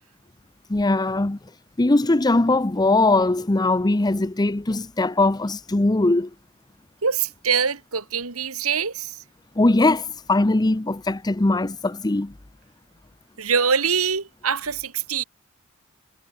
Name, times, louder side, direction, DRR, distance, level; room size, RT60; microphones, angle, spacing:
voice 1, 0.7-1.4 1.8-6.3 9.6-12.3, left 2 dB, 20° left, 0.7 m, -20 dB
voice 2, 7.0-9.1 13.4-15.2, right 6 dB, 90° right, 2.4 m, -24 dB
head